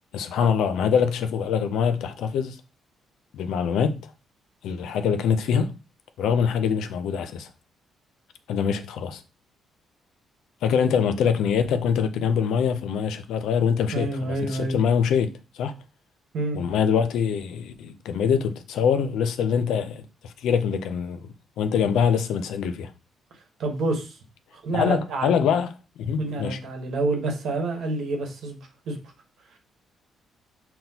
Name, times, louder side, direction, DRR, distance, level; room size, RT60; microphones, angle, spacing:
voice 1, 0.1-2.6 3.3-4.0 4.6-5.7 6.2-7.5 8.5-9.2 10.6-15.7 16.5-21.3 21.6-22.9 24.7-25.7 26.0-26.6, left 7 dB, 80° left, 0.4 m, -24 dB
voice 2, 13.9-14.8 16.3-16.6 23.6-24.2 24.6-25.3 26.2-28.6 28.9-29.0, right 2 dB, 70° right, 1.1 m, -28 dB
5.8 x 2.1 x 2.8 m
cardioid pair, 90°, 0 cm